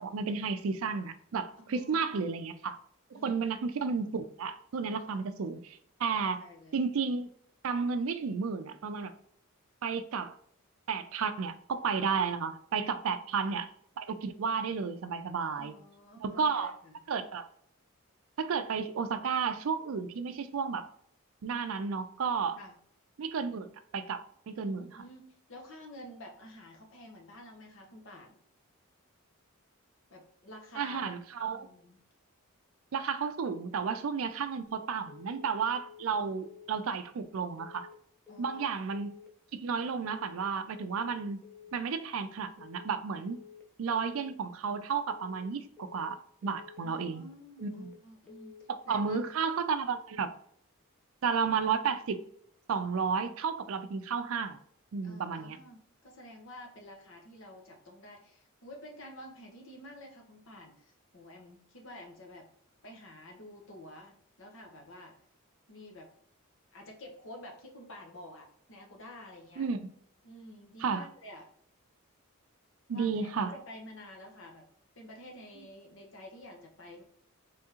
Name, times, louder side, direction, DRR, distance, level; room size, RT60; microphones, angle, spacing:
voice 1, 0.0-2.8 3.1-6.4 6.7-7.3 7.6-9.1 9.8-10.4 10.9-13.7 14.0-15.7 16.2-16.7 17.1-17.5 18.4-20.9 21.4-22.6 23.2-25.0 30.8-31.7 32.9-37.9 38.4-39.1 39.5-41.4 41.7-43.4 43.8-47.3 47.6-47.9 48.9-50.3 51.2-52.2 52.7-54.6 54.9-55.6 69.6-69.8 70.8-71.1 72.9-73.5, right 5 dB, 70° right, 10 dB, 0.4 m, -32 dB
voice 2, 1.6-2.3 3.1-3.5 6.2-6.8 13.4-13.6 15.5-17.0 22.6-22.7 24.9-28.3 30.1-31.1 31.5-32.0 36.1-36.3 38.3-38.7 46.8-48.6 48.9-49.2 55.0-62.5 62.8-65.2 65.7-66.1 66.7-69.7 70.2-71.4 72.9-74.7 74.9-77.0, left 1 dB, 60° left, 1 dB, 1.0 m, -50 dB
sound 1, 35.1-35.5 35.8-36.2 36.4-36.8 37.6-38.0 38.3-38.7 38.9-39.3 40.1-40.5 40.8-41.2 41.4-41.8 42.6-43.0 43.3-43.7 43.9-44.3 45.1-45.5 45.8-46.2 46.4-46.8 47.6-48.0 48.3-48.7 48.9-49.3, left 8 dB, 5° left, 0.7 m, -52 dB
3.5 x 3.4 x 2.9 m, 0.64 s
head